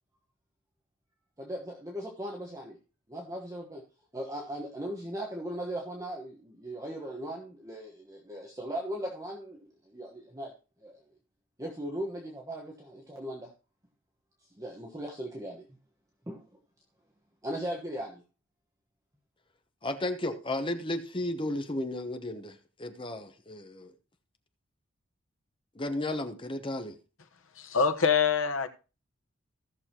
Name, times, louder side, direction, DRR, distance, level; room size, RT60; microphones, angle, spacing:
voice 1, 1.4-2.8 3.1-3.8 4.1-10.5 10.8-11.0 11.6-13.5 14.6-15.7 16.3-16.4 17.4-18.2, right 1 dB, 15° right, 1.3 m, -38 dB
voice 2, 19.8-23.9 25.7-27.0, left 1 dB, 25° left, 1.0 m, -34 dB
voice 3, 27.6-28.7, left 6 dB, 80° left, 1.1 m, -25 dB
16.0 x 6.5 x 2.9 m
head